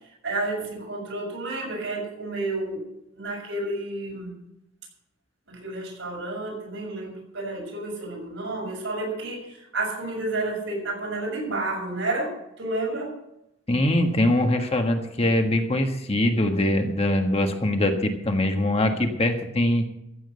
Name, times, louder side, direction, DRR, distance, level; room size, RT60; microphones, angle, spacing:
voice 1, 0.2-4.3 5.5-13.1, right 2 dB, 75° right, -1 dB, 6.6 m, -31 dB
voice 2, 13.7-19.9, left 1 dB, 30° left, 4 dB, 1.5 m, -22 dB
14.5 x 7.7 x 7.7 m, 0.83 s
head